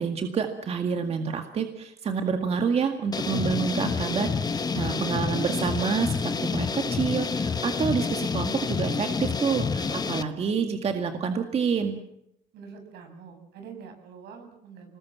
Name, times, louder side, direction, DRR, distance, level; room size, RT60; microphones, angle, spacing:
voice 1, 0.0-12.0, right 6 dB, 35° right, 6 dB, 2.0 m, -28 dB
sound 1, 3.1-10.2, left 5 dB, 25° left, 1.2 m, -28 dB
voice 2, 4.8-5.3 12.5-15.0, right 5 dB, 80° right, 5 dB, 7.7 m, -45 dB
27.5 x 20.0 x 7.4 m, 0.78 s
cardioid pair, 135°, 17 cm